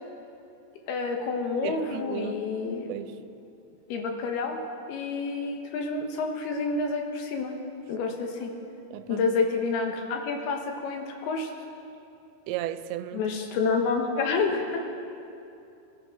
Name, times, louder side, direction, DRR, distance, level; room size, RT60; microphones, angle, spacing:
voice 1, 0.9-2.9 3.9-4.6 4.9-7.5 7.9-8.5 9.1-11.5 13.1-14.8, left 4 dB, 70° left, 3 dB, 3.1 m, -28 dB
voice 2, 1.6-2.4 2.9-3.2 8.9-9.3 12.5-13.2, right 12 dB, 85° right, 12 dB, 2.7 m, -34 dB
22.5 x 14.0 x 3.9 m, 2.7 s
omnidirectional pair, 5.0 m